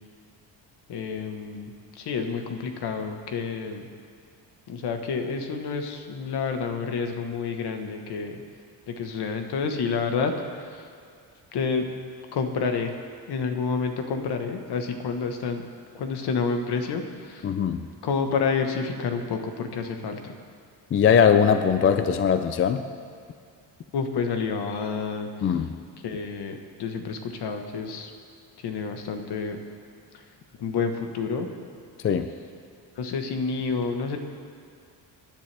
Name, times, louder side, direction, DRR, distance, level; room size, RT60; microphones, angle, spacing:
voice 1, 0.9-1.7 2.0-3.9 4.7-8.4 9.0-10.3 11.5-11.9 12.3-12.9 13.3-15.6 15.9-17.0 17.3-17.4 18.0-20.3 23.9-25.3 26.0-26.5 26.8-28.1 28.6-29.6 30.6-31.5 33.0-34.2, left 5 dB, 60° left, 5 dB, 1.4 m, -29 dB
voice 2, 17.4-17.8 20.9-22.8 25.4-25.7 32.0-32.3, left 7 dB, 30° left, 9 dB, 0.4 m, -20 dB
26.0 x 10.5 x 3.4 m, 2.2 s
cardioid pair, 160°, 44 cm